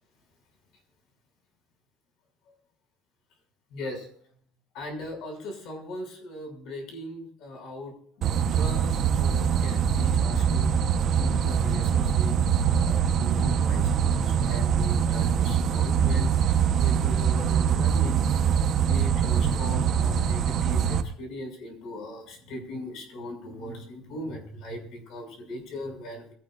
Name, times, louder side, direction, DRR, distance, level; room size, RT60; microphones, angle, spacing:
voice 1, 3.7-4.1 4.7-8.0 8.2-18.2 18.8-26.3, left 1 dB, 55° left, 2 dB, 6.6 m, -39 dB
sound 1, 8.2-21.0, right 7 dB, 40° right, 1.1 m, -23 dB
24.5 x 18.0 x 2.6 m, 0.62 s
cardioid pair, 180°, 0 cm